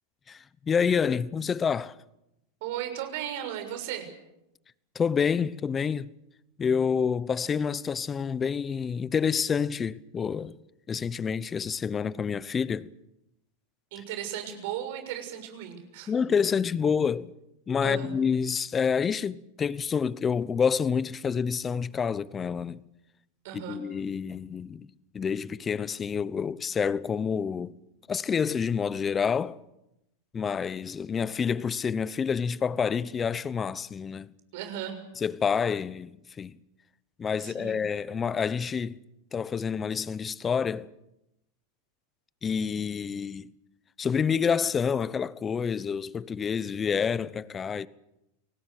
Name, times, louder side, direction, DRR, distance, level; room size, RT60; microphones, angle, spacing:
voice 1, 0.3-2.0 4.9-6.1 6.6-10.6 10.9-12.9 16.1-17.3 17.7-22.8 23.7-24.9 25.1-27.7 28.1-29.6 30.3-34.3 35.2-36.1 36.4-36.6 37.2-39.0 39.3-40.9 42.4-43.5 44.0-47.9, left 6 dB, 20° left, 0.9 m, -28 dB
voice 2, 2.6-4.1 13.9-16.1 17.8-18.1 23.4-23.8 34.5-35.0 37.4-37.8, right 10 dB, 65° right, 6.5 m, -36 dB
29.5 x 19.5 x 6.6 m
supercardioid pair, 125°, 0 cm